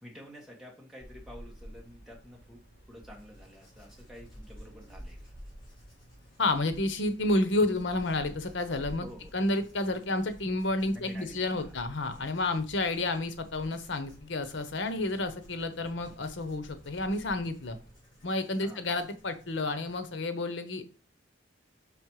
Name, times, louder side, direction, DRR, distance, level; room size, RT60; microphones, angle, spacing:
voice 1, 0.0-2.6 2.9-5.3 9.0-9.5 10.8-11.8 18.6-19.0, equal, ahead, -2 dB, 1.8 m, -49 dB
sound 1, 1.0-17.9, equal, 55° left, 3.4 m, -51 dB
Writing, 3.1-20.2, equal, 25° left, 4.0 m, -61 dB
voice 2, 6.4-9.1 9.3-17.8 18.2-20.9, left 2 dB, 80° left, 10 dB, 0.9 m, -30 dB
5.2 x 4.7 x 4.8 m, 0.37 s
head